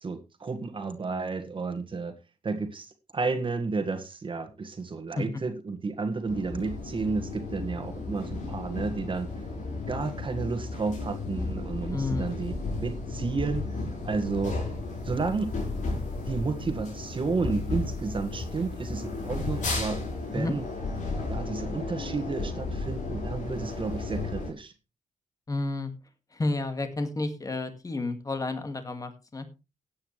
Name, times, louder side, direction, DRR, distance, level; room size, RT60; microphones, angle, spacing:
voice 1, 0.0-2.1 2.4-9.3 9.9-13.8 14.0-14.6 15.0-15.5 16.3-20.0 20.3-20.7 21.3-24.7, right 4 dB, 40° right, 7 dB, 1.7 m, -32 dB
sound 1, 6.3-24.5, left 3 dB, 75° left, 5.1 m, -34 dB
voice 2, 11.9-12.4 20.3-20.5 25.5-25.9 26.3-29.5, left 2 dB, 25° left, 8 dB, 2.0 m, -31 dB
16.5 x 8.7 x 3.2 m, 0.27 s
cardioid pair, 100°, 13 cm